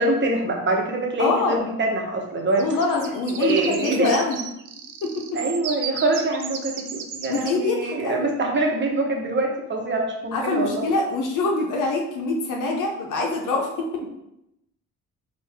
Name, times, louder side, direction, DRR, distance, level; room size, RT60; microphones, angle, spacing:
voice 1, 0.0-2.7 3.4-4.2 5.3-10.8, right 2 dB, 35° right, 0 dB, 1.0 m, -24 dB
voice 2, 1.2-1.6 2.6-4.4 5.0-5.4 7.3-8.4 10.3-14.0, left 3 dB, 80° left, 0 dB, 0.8 m, -24 dB
sound 1, 2.6-7.5, right 7 dB, 85° right, 0.5 m, -35 dB
4.6 x 2.6 x 3.4 m, 0.84 s
cardioid pair, 105°, 31 cm